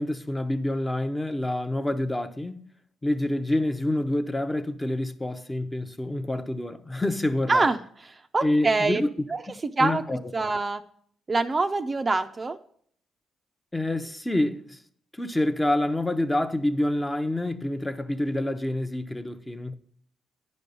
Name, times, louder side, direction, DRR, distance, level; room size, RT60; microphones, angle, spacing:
voice 1, 0.0-2.7 3.0-7.7 8.4-9.1 9.8-10.2 13.7-14.8 15.1-19.8, left 1 dB, 10° left, 0.7 m, -27 dB
voice 2, 7.5-9.0 9.3-9.4 9.8-10.0 10.3-10.8 11.3-12.6, right 3 dB, 30° right, 0.5 m, -25 dB
9.9 x 5.3 x 6.8 m
cardioid pair, 100°, 0 cm